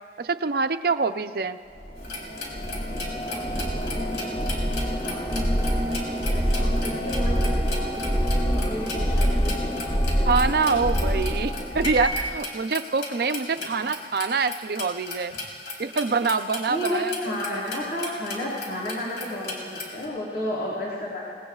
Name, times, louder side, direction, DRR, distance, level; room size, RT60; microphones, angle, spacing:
voice 1, 0.2-1.6 10.3-15.3 15.8-17.1 17.5-17.6, right 4 dB, 55° right, 10 dB, 0.5 m, -25 dB
sound 1, 1.8-12.4, equal, 30° left, 1.0 m, -26 dB
sound 2, 2.0-20.0, left 2 dB, 85° left, 3.8 m, -37 dB
voice 2, 2.8-4.4 4.9-7.5 8.1-9.5 13.6-13.7 16.7-21.2, left 1 dB, 65° left, -7 dB, 3.7 m, -33 dB
29.5 x 19.5 x 2.4 m, 2.1 s
head